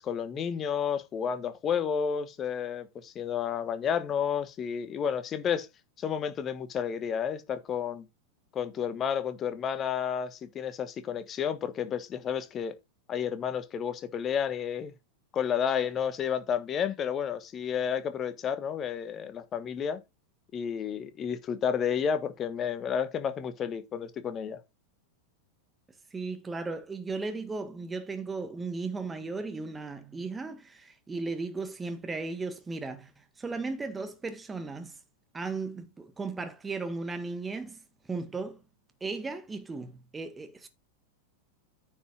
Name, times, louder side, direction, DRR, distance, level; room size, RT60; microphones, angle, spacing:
voice 1, 0.0-5.7 6.0-8.1 8.5-12.7 13.1-14.9 15.3-20.0 20.5-24.6, left 7 dB, 25° left, 1.3 m, -31 dB
voice 2, 26.1-35.0 35.3-38.6 39.0-40.7, right 3 dB, 15° right, 1.8 m, -36 dB
9.5 x 5.7 x 4.4 m
figure-of-eight pair, 90°, 0 cm